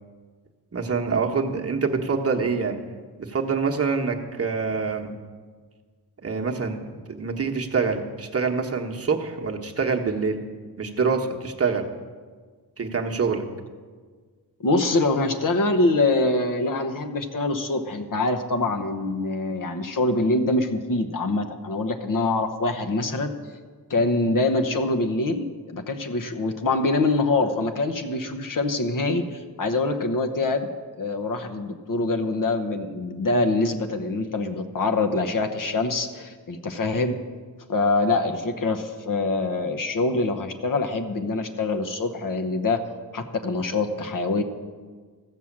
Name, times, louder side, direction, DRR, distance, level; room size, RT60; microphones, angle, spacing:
voice 1, 0.7-2.8 3.2-5.1 6.2-6.8 7.1-10.4 10.8-11.9 12.8-13.4, right 5 dB, 35° right, 2 dB, 1.1 m, -25 dB
voice 2, 14.6-23.3 23.9-30.7 31.0-37.1 37.7-42.8 43.1-44.4, left 2 dB, 55° left, 5 dB, 1.0 m, -24 dB
15.0 x 6.3 x 7.2 m, 1.5 s
wide cardioid pair, 120°, 40 cm